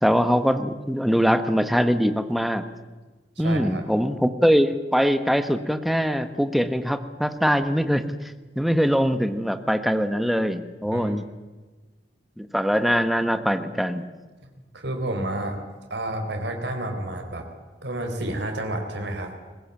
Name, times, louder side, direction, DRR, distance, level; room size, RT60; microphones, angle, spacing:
voice 1, 0.0-2.6 3.4-8.0 8.6-11.2 12.4-14.0, equal, ahead, 9 dB, 1.2 m, -22 dB
voice 2, 3.4-3.8 10.8-11.2 14.4-15.6 15.9-17.5 17.8-19.3, right 1 dB, 70° right, 4 dB, 4.1 m, -30 dB
22.0 x 20.5 x 8.9 m, 1.3 s
head